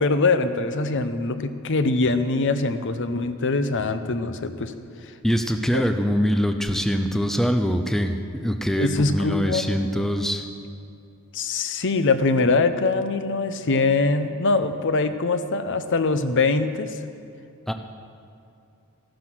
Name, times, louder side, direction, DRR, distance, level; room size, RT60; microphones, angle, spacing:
voice 1, 0.0-4.7 5.7-5.8 8.8-9.7 11.3-17.0, left 3 dB, 55° left, 10 dB, 0.7 m, -23 dB
voice 2, 5.2-10.5 17.7-17.8, equal, ahead, 6 dB, 0.5 m, -23 dB
14.0 x 11.5 x 6.2 m, 2.6 s
head